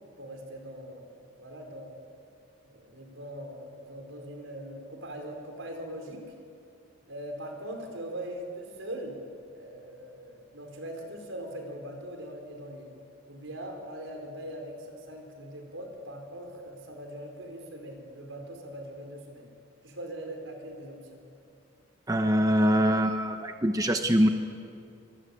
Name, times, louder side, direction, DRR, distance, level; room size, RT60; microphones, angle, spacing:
voice 1, 0.2-1.1 1.4-1.9 2.6-6.3 7.1-9.2 9.5-12.9 13.3-19.5 19.8-21.2, right 1 dB, 75° right, 3 dB, 4.9 m, -41 dB
voice 2, 22.1-24.3, equal, 15° right, 6 dB, 0.9 m, -23 dB
24.5 x 22.5 x 8.6 m, 2.4 s
head